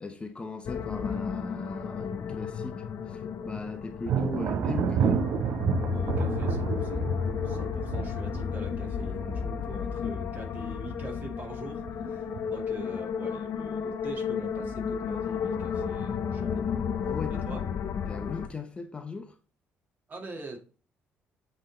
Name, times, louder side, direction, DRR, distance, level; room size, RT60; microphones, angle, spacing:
voice 1, 0.0-5.2 17.0-17.7 18.0-19.4, left 4 dB, 25° left, 0.8 m, -38 dB
sound 1, 0.6-18.5, left 7 dB, 55° left, 0.8 m, -33 dB
Thunder, 4.0-10.5 10.8-11.4 11.9-12.7, right 7 dB, 65° right, 0.8 m, -30 dB
voice 2, 5.9-7.1 7.4-16.6 17.4-17.6 20.1-20.6, right 2 dB, 40° right, 2.0 m, -43 dB
7.8 x 3.4 x 3.9 m
cardioid pair, 100°, 4 cm